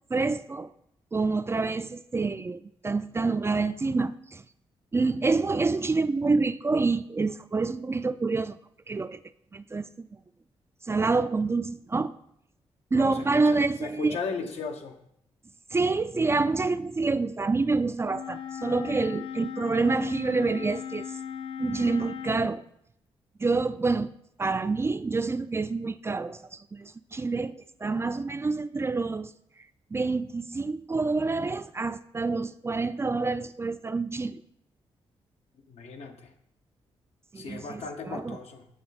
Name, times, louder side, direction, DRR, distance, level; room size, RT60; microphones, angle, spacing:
voice 1, 0.1-0.7 1.1-4.4 4.9-8.6 8.9-9.2 9.5-10.1 10.8-12.1 12.9-14.2 15.7-21.1 21.6-22.6 23.4-24.1 24.4-29.3 29.9-34.4 37.3-38.4, right 3 dB, 25° right, 12 dB, 0.3 m, -27 dB
voice 2, 12.9-15.0 35.7-36.3 37.3-38.7, left 4 dB, 75° left, 4 dB, 0.9 m, -37 dB
Wind instrument woodwind instrument, 18.0-22.5, left 8 dB, 55° left, 0.6 m, -37 dB
7.7 x 6.0 x 4.0 m, 0.73 s
cardioid pair, 75°, 11 cm